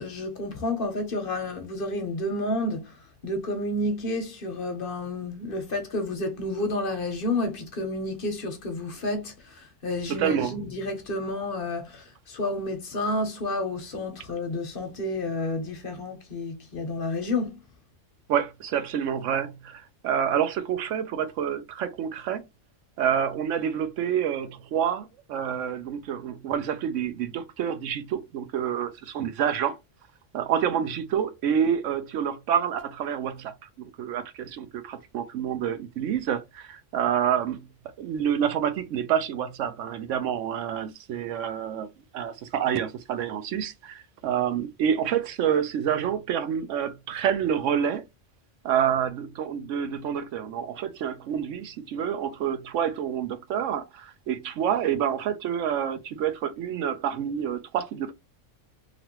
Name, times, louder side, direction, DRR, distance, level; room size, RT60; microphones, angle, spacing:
voice 1, 0.0-17.6, left 2 dB, 50° left, 0.9 m, -30 dB
voice 2, 10.1-10.6 18.3-22.4 23.0-29.8 30.3-37.7 38.0-41.9 42.1-48.1 48.6-58.1, right 8 dB, 90° right, 1.0 m, -28 dB
3.0 x 2.5 x 2.9 m
omnidirectional pair, 1.3 m